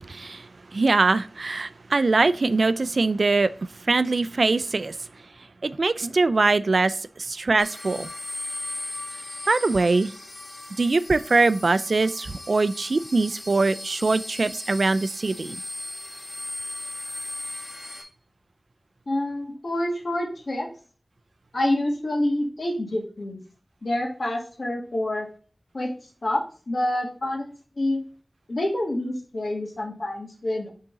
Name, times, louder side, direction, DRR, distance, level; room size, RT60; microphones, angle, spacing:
voice 1, 0.0-3.5 3.8-5.0 5.6-8.1 9.5-10.1 10.8-15.6, right 3 dB, 80° right, 15 dB, 0.3 m, -22 dB
sound 1, 7.6-18.0, left 1 dB, 50° left, 1.9 m, -37 dB
voice 2, 19.1-20.7 21.5-23.4 23.8-25.3 25.7-25.9 26.2-27.5 27.8-28.0 28.5-30.7, left 1 dB, 75° left, 2 dB, 1.7 m, -27 dB
6.8 x 3.7 x 3.8 m, 0.39 s
wide cardioid pair, 45°, 0 cm